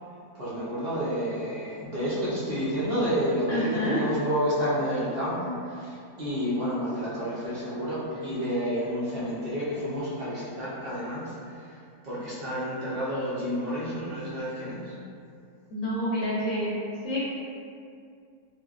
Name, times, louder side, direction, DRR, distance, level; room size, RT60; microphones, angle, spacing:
voice 1, 0.3-11.8 12.0-14.9, equal, 65° right, -9 dB, 0.6 m, -30 dB
voice 2, 3.5-4.0 15.7-17.3, equal, 65° left, -9 dB, 0.8 m, -28 dB
3.2 x 2.1 x 2.3 m, 2.4 s
omnidirectional pair, 1.6 m